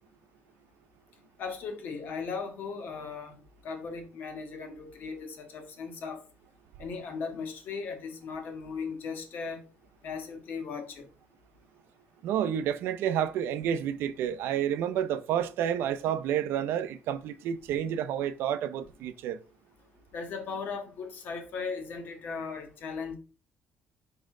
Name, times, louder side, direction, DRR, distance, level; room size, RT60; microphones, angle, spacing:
voice 1, 1.4-6.2 6.8-9.6 10.0-11.1 20.1-23.2, left 5 dB, 55° left, 1.5 m, -37 dB
voice 2, 12.2-19.4, right 9 dB, 90° right, 0.6 m, -30 dB
5.4 x 5.0 x 3.7 m
cardioid pair, 165°, 4 cm